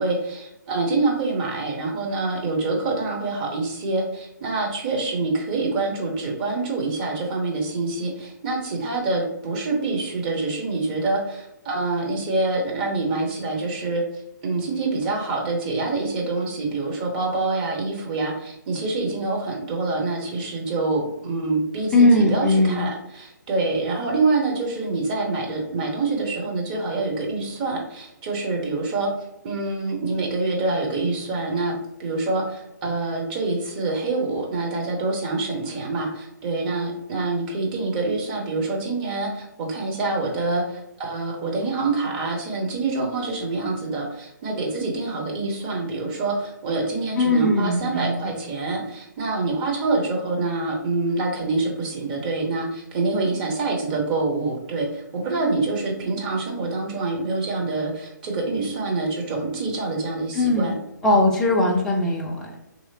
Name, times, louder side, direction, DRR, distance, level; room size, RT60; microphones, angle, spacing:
voice 1, 0.0-14.0 14.4-29.1 29.4-31.7 32.0-60.7, right 3 dB, 25° right, -1 dB, 0.7 m, -26 dB
voice 2, 21.9-22.9 47.2-48.1 60.3-60.7 61.0-62.6, left 2 dB, 5° left, -3 dB, 0.4 m, -19 dB
3.1 x 2.8 x 2.7 m, 0.86 s
figure-of-eight pair, 135°, 10 cm